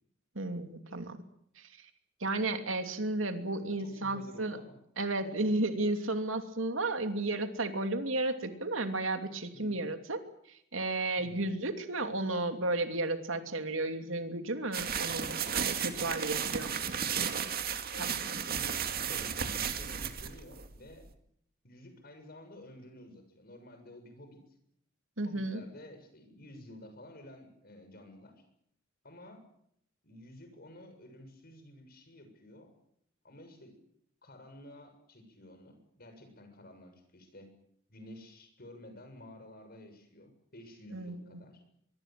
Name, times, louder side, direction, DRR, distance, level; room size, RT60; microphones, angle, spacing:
voice 1, 0.3-1.2 1.6-1.7 2.2-4.6 5.0-10.2 10.5-16.7 17.2-17.4 18.0-18.2 25.2-25.6 40.9-41.2, right 2 dB, 75° right, 7 dB, 2.8 m, -33 dB
voice 2, 3.6-4.8 5.2-5.4 9.5-9.8 11.2-11.6 16.0-16.7 17.9-18.2 18.5-21.1 21.6-24.4 25.2-28.4 29.0-29.5 30.0-32.8 33.2-33.8 34.2-37.5 37.9-41.6, left 1 dB, 50° left, 7 dB, 7.0 m, -52 dB
sound 1, 14.7-21.1, right 7 dB, 45° right, 2.3 m, -34 dB
24.0 x 23.5 x 7.7 m, 0.72 s
head